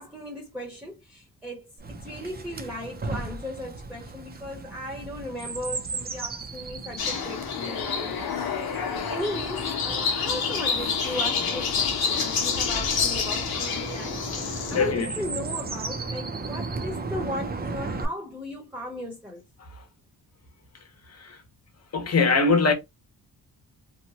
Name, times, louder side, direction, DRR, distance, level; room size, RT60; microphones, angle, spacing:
voice 1, 0.0-8.4 8.7-19.4, left 1 dB, 5° right, 0.8 m, -37 dB
Chirp tweet, 1.8-18.0, right 3 dB, 25° right, 0.5 m, -36 dB
sound 1, 7.0-14.9, left 6 dB, 90° left, 0.9 m, -28 dB
voice 2, 14.7-15.1 21.9-22.7, left 4 dB, 45° left, 0.9 m, -21 dB
2.8 x 2.2 x 2.8 m
cardioid pair, 110°, 36 cm